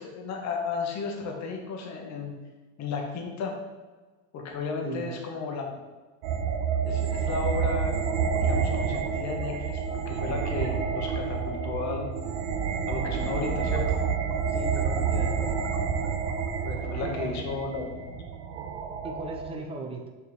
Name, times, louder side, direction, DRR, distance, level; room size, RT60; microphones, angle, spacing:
voice 1, 0.0-2.4 2.8-3.6 4.3-5.8 6.8-8.0 8.4-12.1 12.9-14.0 16.6-18.2, left 4 dB, 45° left, 2 dB, 1.2 m, -34 dB
sound 1, 6.2-19.6, right 6 dB, 80° right, 1.0 m, -29 dB
voice 2, 14.5-15.6 17.0-17.5 19.0-20.1, right 2 dB, 15° right, 3 dB, 0.7 m, -38 dB
6.5 x 4.5 x 3.5 m, 1.3 s
supercardioid pair, 115°, 39 cm